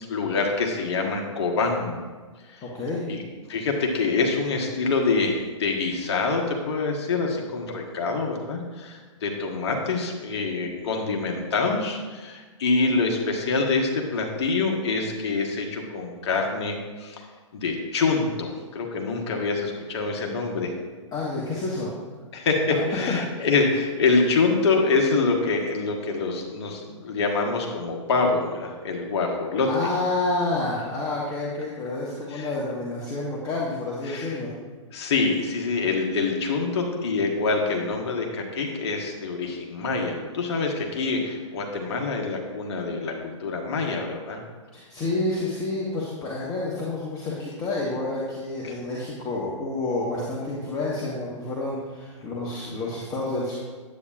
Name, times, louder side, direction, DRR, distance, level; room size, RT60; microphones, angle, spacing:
voice 1, 0.1-2.0 2.5-2.6 3.1-3.2 3.5-17.2 17.5-20.7 22.3-29.9 32.3-32.5 34.1-34.3 34.9-44.4 48.6-48.7, left 4 dB, 55° left, 1 dB, 1.3 m, -25 dB
voice 2, 2.6-3.0 21.1-21.9 22.7-22.8 23.0-23.5 29.7-34.5 44.7-53.5, left 2 dB, 20° left, -5 dB, 1.2 m, -29 dB
9.4 x 8.2 x 2.4 m, 1.4 s
figure-of-eight pair, 115°, 16 cm